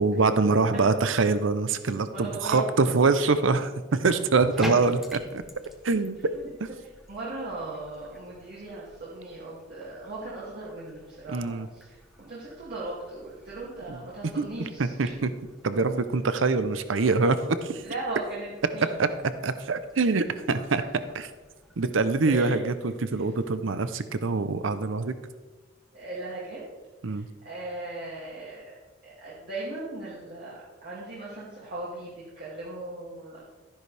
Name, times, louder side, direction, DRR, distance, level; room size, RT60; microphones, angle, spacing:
voice 1, 0.0-5.4 5.8-6.2 11.3-11.7 13.9-14.0 14.2-14.5 14.8-15.3 15.6-17.8 19.0-19.1 19.4-20.8 21.1-21.3 21.8-25.2 27.0-27.3, right 3 dB, 75° right, 11 dB, 0.7 m, -24 dB
voice 2, 2.1-2.7 6.3-6.5 7.1-15.2 17.8-18.9 22.3-22.6 25.9-26.6 27.1-28.7 29.0-33.4, right 2 dB, 55° right, -7 dB, 2.5 m, -38 dB
Bathtub (filling or washing), 4.3-22.7, equal, ahead, 1.0 m, -47 dB
12.5 x 11.0 x 3.4 m, 1.3 s
head